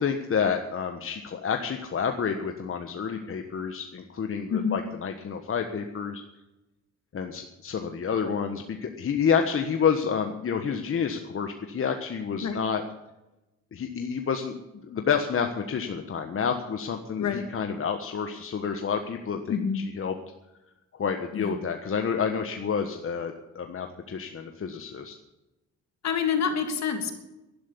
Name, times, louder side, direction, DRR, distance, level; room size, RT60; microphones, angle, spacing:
voice 1, 0.0-6.2 7.1-12.8 13.7-20.1 21.0-25.1, left 6 dB, 45° left, 5 dB, 1.4 m, -29 dB
voice 2, 19.5-19.8 21.3-21.5 26.0-27.2, left 7 dB, 65° left, 5 dB, 3.0 m, -27 dB
12.0 x 11.0 x 8.4 m, 0.98 s
cardioid pair, 90°, 30 cm